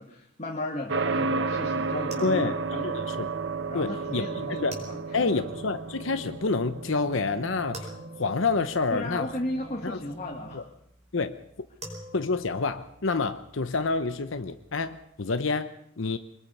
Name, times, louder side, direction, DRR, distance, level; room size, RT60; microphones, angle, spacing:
voice 1, 0.0-2.9 3.7-5.4 8.9-10.7, left 1 dB, 35° left, 1 dB, 1.7 m, -35 dB
sound 1, 0.9-10.5, right 4 dB, 60° right, 0.9 m, -33 dB
sound 2, 1.5-15.0, right 1 dB, 35° right, 4.7 m, -50 dB
voice 2, 2.2-2.5 2.8-3.3 3.7-4.8 5.1-7.9 8.2-9.3 9.8-10.0 10.5-10.6 11.1-11.4 12.1-16.2, left 4 dB, 70° left, 9 dB, 0.8 m, -28 dB
23.5 x 21.0 x 5.5 m, 0.78 s
head